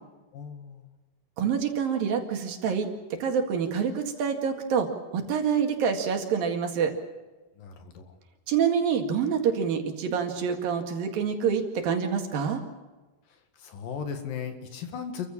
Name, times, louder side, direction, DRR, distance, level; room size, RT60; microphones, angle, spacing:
voice 1, 0.3-0.9 7.6-8.1 13.6-15.3, left 7 dB, 65° left, 6 dB, 3.4 m, -36 dB
voice 2, 1.4-2.9 3.2-6.9 8.5-12.6, right 7 dB, 70° right, 4 dB, 3.7 m, -26 dB
28.0 x 15.0 x 7.3 m, 1.2 s
omnidirectional pair, 4.4 m